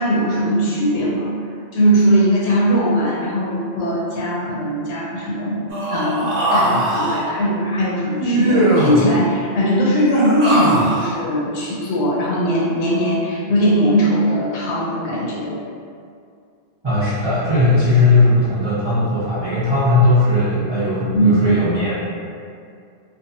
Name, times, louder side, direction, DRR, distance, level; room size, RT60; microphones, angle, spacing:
voice 1, 0.0-1.4 1.7-15.5 21.1-21.4, equal, 85° left, -6 dB, 0.9 m, -19 dB
Human voice, 5.7-7.2 8.2-9.1 10.0-11.1, right 1 dB, 65° right, 0.9 m, -20 dB
voice 2, 16.8-21.9, left 2 dB, 35° right, -12 dB, 0.5 m, -17 dB
2.6 x 2.4 x 2.7 m, 2.3 s
omnidirectional pair, 1.1 m